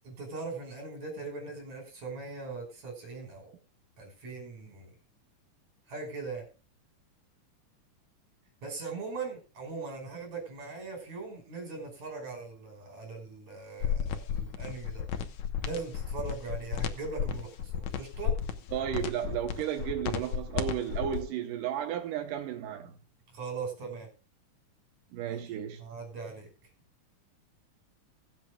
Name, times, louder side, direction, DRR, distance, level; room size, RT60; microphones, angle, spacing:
voice 1, 0.0-3.5 4.0-4.9 5.9-6.4 8.6-15.0 15.6-18.3 23.3-24.1 25.3-25.4 25.8-26.5, right 4 dB, 60° right, 6.6 m, -40 dB
sound 1, 13.8-21.2, left 8 dB, 70° left, 2.3 m, -33 dB
voice 2, 18.7-23.0 25.1-25.8, right 10 dB, 90° right, 2.7 m, -33 dB
23.5 x 8.1 x 2.3 m
omnidirectional pair, 3.6 m